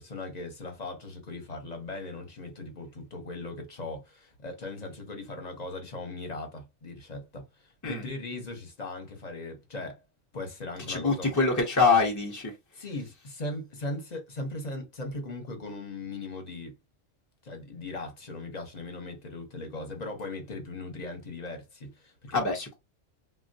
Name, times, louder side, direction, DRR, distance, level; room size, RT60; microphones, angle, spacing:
voice 1, 0.0-10.0 10.3-11.3 12.7-16.7 17.4-22.5, left 2 dB, 40° left, 0.8 m, -39 dB
voice 2, 10.9-12.5 22.3-22.8, left 4 dB, 25° left, 0.4 m, -24 dB
3.4 x 2.3 x 2.6 m
omnidirectional pair, 1.3 m